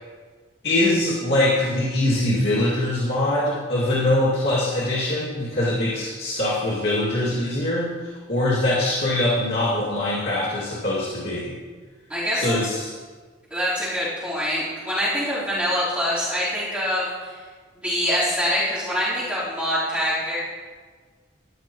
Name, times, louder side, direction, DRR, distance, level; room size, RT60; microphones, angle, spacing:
voice 1, 0.6-11.6 12.3-12.9, left 1 dB, 65° left, -8 dB, 2.2 m, -23 dB
voice 2, 12.1-12.6 13.5-17.3 17.8-20.4, equal, 5° right, -12 dB, 3.8 m, -25 dB
14.5 x 11.0 x 3.0 m, 1.5 s
head